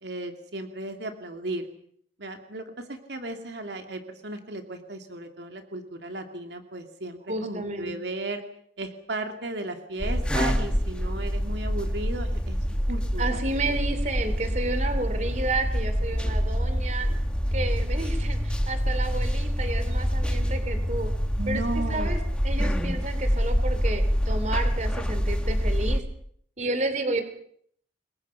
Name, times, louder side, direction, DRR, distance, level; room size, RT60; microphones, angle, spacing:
voice 1, 0.0-1.7 2.2-8.4 8.8-13.5 21.4-22.2, right 2 dB, 80° right, 5 dB, 2.5 m, -35 dB
voice 2, 7.3-7.9 13.2-17.1 17.5-21.1 21.5-21.6 21.9-22.2 22.4-26.0 26.6-27.2, right 2 dB, 40° right, 9 dB, 3.1 m, -31 dB
sound 1, 10.0-26.0, equal, 5° left, 1.8 m, -26 dB
28.5 x 22.0 x 5.7 m, 0.65 s
head